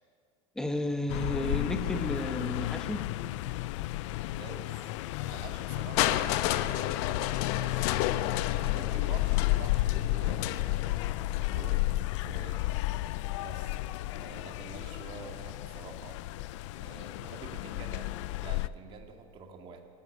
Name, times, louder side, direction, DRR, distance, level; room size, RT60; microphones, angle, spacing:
voice 1, 0.5-3.2, left 1 dB, 5° left, 6 dB, 1.2 m, -33 dB
sound 1, 1.1-18.7, left 17 dB, 80° left, 0.6 m, -32 dB
voice 2, 4.4-4.9 5.2-8.0 8.6-11.0 11.3-11.9 12.3-12.6 13.4-13.8 14.1-16.2 16.8-19.8, right 5 dB, 35° right, 4 dB, 2.0 m, -47 dB
Crushing, 6.0-11.9 12.8-12.9, left 14 dB, 60° left, 1.0 m, -32 dB
25.5 x 13.5 x 9.6 m, 2.2 s
cardioid pair, 165°, 15 cm